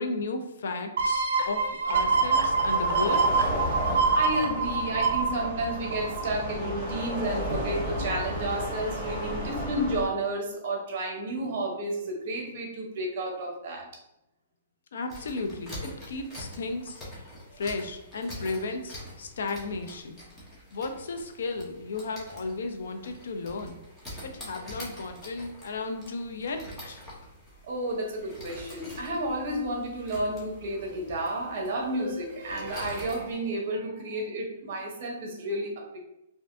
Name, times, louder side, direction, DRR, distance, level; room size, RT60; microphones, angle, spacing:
voice 1, 0.0-3.3 14.9-17.0 17.5-20.2 20.7-23.8 24.2-27.0, left 3 dB, 65° left, 6 dB, 0.4 m, -34 dB
sound 1, 1.0-6.5 6.9-7.0, right 4 dB, 70° right, 0.4 m, -26 dB
sound 2, 1.9-10.1, equal, 15° right, 1.3 m, -33 dB
voice 2, 3.8-13.9 27.6-36.0, right 1 dB, 40° right, 0 dB, 0.8 m, -31 dB
sound 3, 15.1-33.3, equal, 10° left, 0.7 m, -45 dB
3.3 x 2.5 x 2.5 m, 0.86 s
hypercardioid pair, 175°, 0 cm